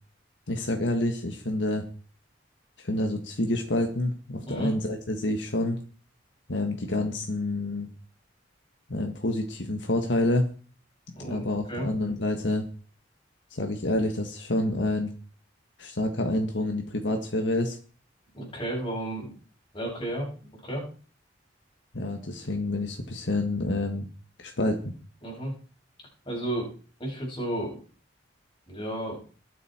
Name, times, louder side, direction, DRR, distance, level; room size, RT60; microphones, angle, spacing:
voice 1, 0.5-1.9 2.8-5.8 6.5-7.9 8.9-10.5 11.3-12.6 13.5-15.1 15.8-17.8 21.9-24.1 24.4-24.9, left 1 dB, 70° left, 4 dB, 1.7 m, -28 dB
voice 2, 11.1-11.9 18.3-19.3 19.7-20.8 25.2-25.5 26.2-26.7 27.0-27.8 28.7-29.2, right 1 dB, 30° left, -3 dB, 7.9 m, -33 dB
22.0 x 8.1 x 4.5 m, 0.41 s
head